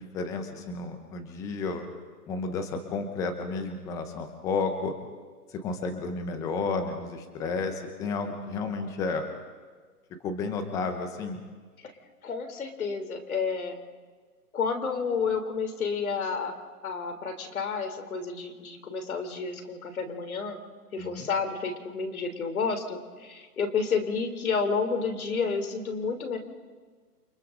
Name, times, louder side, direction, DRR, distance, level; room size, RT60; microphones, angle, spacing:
voice 1, 0.0-1.8 2.3-4.9 5.5-9.2 10.2-11.4 21.0-21.3, left 4 dB, 5° left, 7 dB, 0.9 m, -32 dB
voice 2, 12.2-13.8 14.5-16.5 16.8-20.6 20.9-26.4, left 5 dB, 60° left, 7 dB, 3.7 m, -30 dB
29.0 x 26.0 x 3.9 m, 1.5 s
hypercardioid pair, 160°, 47 cm